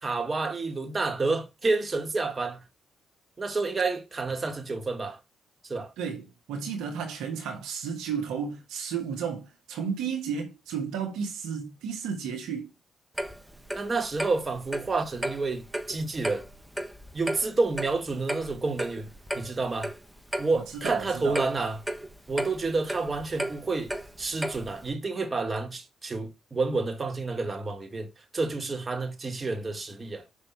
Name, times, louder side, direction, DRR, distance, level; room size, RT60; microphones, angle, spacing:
voice 1, 0.0-2.6 3.4-5.2 5.6-5.9 13.7-16.4 17.1-19.1 19.3-19.9 20.4-21.8 22.3-23.9 24.2-28.1 28.3-30.3, right 3 dB, 40° right, 2.0 m, -29 dB
voice 2, 6.0-12.7 20.5-21.4, right 6 dB, 75° right, 1.5 m, -33 dB
Clock, 13.2-24.9, right 1 dB, 10° right, 1.4 m, -35 dB
6.1 x 5.9 x 4.5 m
hypercardioid pair, 45°, 0 cm